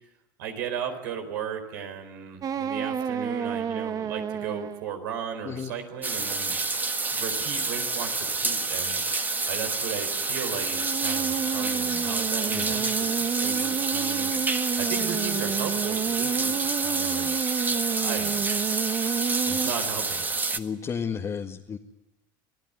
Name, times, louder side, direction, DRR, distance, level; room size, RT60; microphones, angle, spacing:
voice 1, 0.4-6.5 7.1-9.0 9.5-14.3 14.8-17.3 17.6-18.8 19.6-20.2, right 7 dB, 80° right, 5 dB, 4.6 m, -36 dB
sound 1, 2.4-4.9 10.5-19.7, right 8 dB, 35° right, 1.1 m, -30 dB
sound 2, 6.0-20.6, right 3 dB, 15° right, 1.6 m, -28 dB
voice 2, 20.5-21.8, left 6 dB, 30° left, 1 dB, 1.9 m, -33 dB
26.0 x 16.0 x 9.6 m, 0.94 s
supercardioid pair, 100°, 10 cm